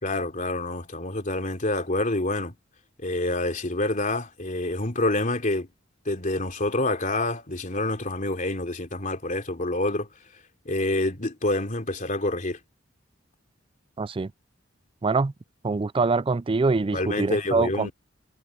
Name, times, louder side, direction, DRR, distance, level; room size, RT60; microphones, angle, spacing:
voice 1, 0.0-2.5 3.0-5.7 6.0-10.1 10.6-12.6 16.9-17.9, left 2 dB, 40° left, 3.4 m, -27 dB
voice 2, 14.0-14.3 15.0-15.3 15.6-17.9, right 3 dB, 25° right, 0.4 m, -24 dB
head